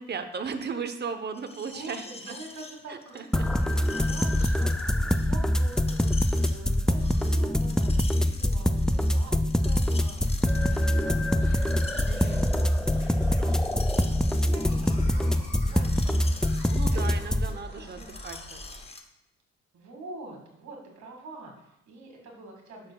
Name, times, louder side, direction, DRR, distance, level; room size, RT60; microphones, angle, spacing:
voice 1, 0.0-2.4 2.9-3.5 12.0-12.6 16.7-18.6, right 5 dB, 35° right, 8 dB, 0.8 m, -36 dB
Screech, 1.3-19.0, left 3 dB, 20° left, 0.7 m, -45 dB
voice 2, 1.7-10.3 10.6-12.8 13.2-14.2 14.5-16.4 16.9-18.1 19.7-22.9, right 2 dB, 70° right, 0 dB, 2.0 m, -46 dB
sound 1, 3.3-17.5, left 1 dB, ahead, 0.3 m, -24 dB
sound 2, 9.4-18.9, left 1 dB, 35° left, 2.3 m, -47 dB
11.5 x 6.4 x 2.3 m, 0.84 s
cardioid pair, 100°, 29 cm